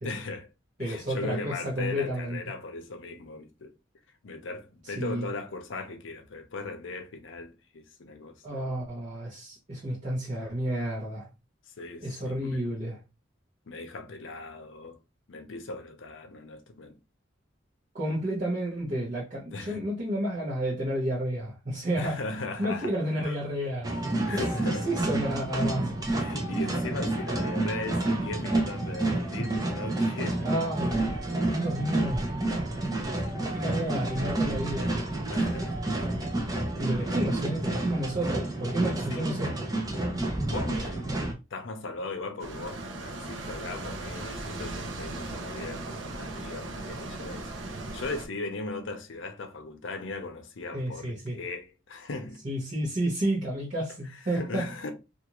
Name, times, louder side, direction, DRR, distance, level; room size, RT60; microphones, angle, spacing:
voice 1, 0.0-0.5 0.8-3.7 4.2-8.7 11.8-12.6 13.7-15.0 15.3-17.0 19.3-19.8 22.0-22.9 23.2-23.4 24.3-24.9 26.1-30.5 30.8-31.0 34.2-34.3 35.3-35.8 39.1-39.3 40.5-41.2 41.5-47.5 47.9-52.4 54.0-54.9, left 3 dB, 70° left, 0.6 m, -38 dB
voice 2, 0.8-2.4 5.0-5.3 8.4-11.3 12.0-13.0 17.9-22.2 22.6-23.9 24.3-25.9 30.4-31.1 31.5-32.3 33.5-34.9 36.8-39.7 50.7-51.4 52.4-54.7, right 1 dB, 40° right, 0.9 m, -31 dB
sound 1, 23.8-41.3, right 2 dB, 20° right, 0.5 m, -29 dB
sound 2, 42.4-48.3, right 2 dB, 70° right, 0.6 m, -37 dB
2.5 x 2.4 x 2.9 m
head